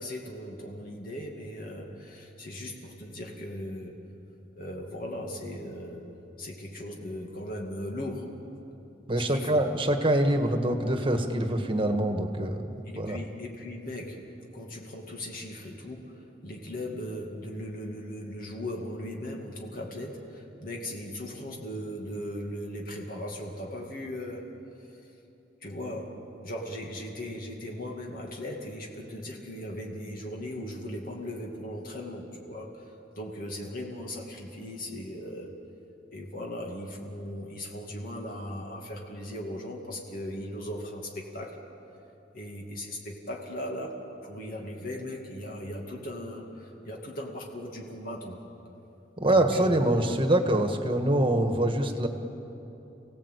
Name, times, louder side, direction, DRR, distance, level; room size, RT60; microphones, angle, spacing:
voice 1, 0.0-4.0 4.5-6.1 6.4-8.4 9.2-9.7 10.4-10.8 12.9-24.5 24.8-25.0 25.6-26.2 26.4-35.5 36.1-41.6 42.3-48.4 49.2-49.8, left 1 dB, 50° left, 0 dB, 2.5 m, -38 dB
voice 2, 9.1-12.6 13.0-13.2 49.2-52.1, right 1 dB, 30° right, 6 dB, 1.6 m, -24 dB
29.0 x 17.5 x 8.3 m, 2.9 s
head